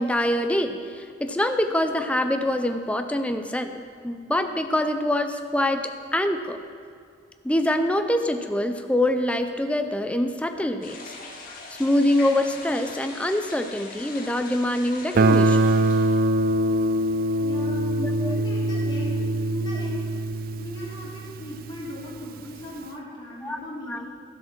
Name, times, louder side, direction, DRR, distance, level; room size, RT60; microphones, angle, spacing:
voice 1, 0.0-5.8 6.1-6.6 7.4-11.0 11.8-15.7 18.0-18.4 23.4-23.6 23.9-24.1, left 1 dB, 5° left, 7 dB, 0.6 m, -25 dB
sound 1, 10.8-16.2, left 3 dB, 50° left, 1.7 m, -41 dB
Guitar, 15.1-21.9, right 2 dB, 55° right, 0.4 m, -23 dB
voice 2, 17.4-17.9 18.3-20.1 20.6-24.1, left 1 dB, 25° left, -8 dB, 3.4 m, -38 dB
12.5 x 7.5 x 6.1 m, 2.3 s
head